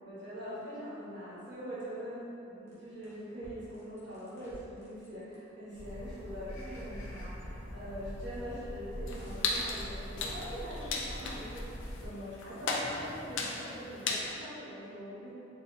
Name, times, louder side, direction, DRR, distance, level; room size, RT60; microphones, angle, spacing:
voice 1, 0.0-15.3, equal, 65° right, -11 dB, 1.2 m, -43 dB
sound 1, 2.7-5.3 6.9-11.3, equal, 15° left, 0.7 m, -55 dB
sound 2, 5.7-12.1, equal, 55° left, 1.0 m, -43 dB
sound 3, 9.1-14.3, left 3 dB, 80° left, 0.4 m, -37 dB
3.9 x 2.6 x 2.3 m, 2.9 s
head